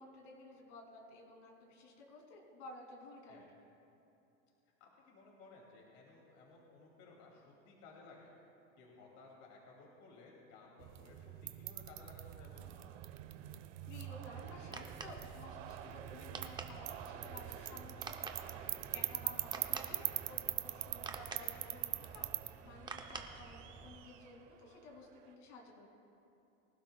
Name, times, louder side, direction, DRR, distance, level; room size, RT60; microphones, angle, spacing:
voice 1, 0.0-3.4 13.9-25.9, left 2 dB, 60° left, 1 dB, 2.9 m, -54 dB
voice 2, 4.8-8.3 8.8-12.9 18.4-18.7, left 3 dB, 40° left, -2 dB, 2.7 m, -58 dB
sound 1, 10.8-22.5, right 16 dB, 45° right, 0.7 m, -43 dB
sound 2, 12.5-25.3, right 9 dB, 65° right, 1.3 m, -54 dB
sound 3, 14.4-24.0, right 4 dB, 10° right, 0.7 m, -50 dB
24.0 x 12.0 x 2.3 m, 2.9 s
supercardioid pair, 135°, 40 cm